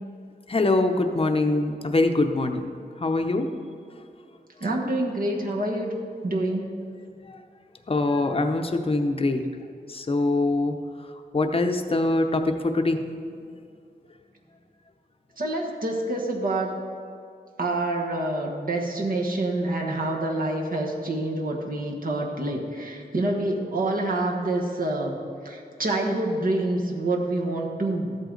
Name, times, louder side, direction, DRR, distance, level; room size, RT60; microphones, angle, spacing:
voice 1, 0.5-2.7 3.0-3.5 7.3-7.4 7.9-9.4 9.9-10.8 11.3-13.4, left 2 dB, 35° left, 5 dB, 0.7 m, -24 dB
voice 2, 4.6-6.0 6.2-6.8 15.4-16.7 17.6-25.2 25.4-28.2, right 2 dB, 55° right, 0 dB, 1.3 m, -27 dB
13.0 x 8.1 x 3.9 m, 2.3 s
wide cardioid pair, 90°, 17 cm